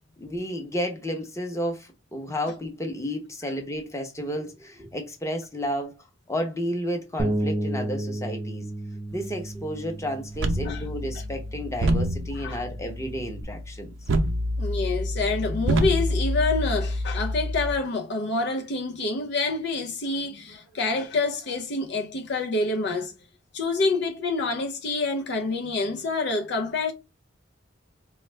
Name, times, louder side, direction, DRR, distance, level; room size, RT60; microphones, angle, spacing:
voice 1, 0.2-5.9 6.3-8.7 9.1-13.9, equal, 15° left, 0.8 m, -32 dB
Bass guitar, 7.2-13.4, right 1 dB, 25° right, 0.5 m, -33 dB
sound 1, 10.3-17.8, equal, 80° right, 0.6 m, -27 dB
voice 2, 14.6-23.1 23.5-26.9, left 3 dB, 60° left, 0.5 m, -27 dB
4.2 x 2.4 x 3.2 m
head